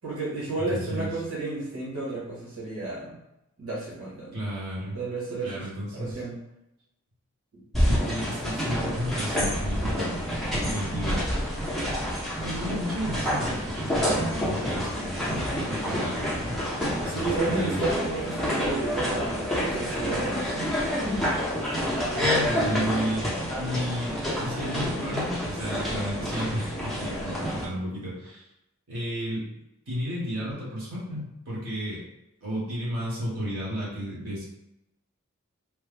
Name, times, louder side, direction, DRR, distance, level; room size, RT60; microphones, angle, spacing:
voice 1, 0.0-3.1 3.6-4.4 4.9-5.7 5.9-6.4 7.5-7.6 17.0-20.7 21.0-21.2, right 3 dB, 85° right, -8 dB, 1.2 m, -32 dB
voice 2, 0.6-1.1 4.3-5.0 5.4-6.2 7.8-11.3 12.4-17.8 22.2-23.3 23.6-28.4 28.9-29.4 29.9-32.0 32.4-34.4, equal, 70° right, -7 dB, 1.4 m, -33 dB
sound 1, 7.7-27.7, equal, ahead, 0.7 m, -28 dB
3.2 x 2.0 x 3.3 m, 0.87 s
head